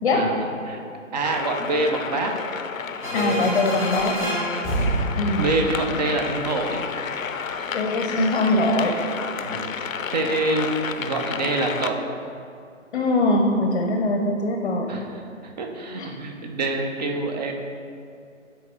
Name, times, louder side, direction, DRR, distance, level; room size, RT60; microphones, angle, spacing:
voice 1, 0.1-0.8 1.1-2.3 3.0-3.6 4.7-4.9 5.4-6.8 9.4-9.7 10.1-10.7 11.0-12.0 14.9-17.5, right 2 dB, 30° right, 3 dB, 0.7 m, -26 dB
sound 1, 1.2-11.9, left 6 dB, 80° left, 0.6 m, -31 dB
sound 2, 3.0-6.6, right 1 dB, 5° right, 1.4 m, -28 dB
voice 2, 3.1-4.1 5.2-5.5 7.7-9.0 12.9-15.0 16.0-16.1, left 2 dB, 40° left, 2 dB, 0.7 m, -22 dB
9.3 x 4.3 x 3.8 m, 2.4 s
figure-of-eight pair, 135°, 40 cm